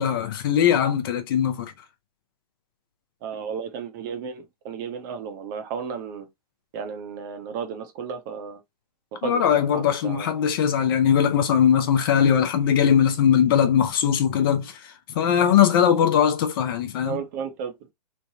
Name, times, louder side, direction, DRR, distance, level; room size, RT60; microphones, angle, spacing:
voice 1, 0.0-1.7 9.2-17.2, left 8 dB, 35° left, 0.5 m, -20 dB
voice 2, 3.2-6.3 6.7-8.6 9.1-10.3 17.0-17.7, right 6 dB, 30° right, 0.6 m, -33 dB
3.2 x 2.1 x 2.6 m
figure-of-eight pair, 125°, 21 cm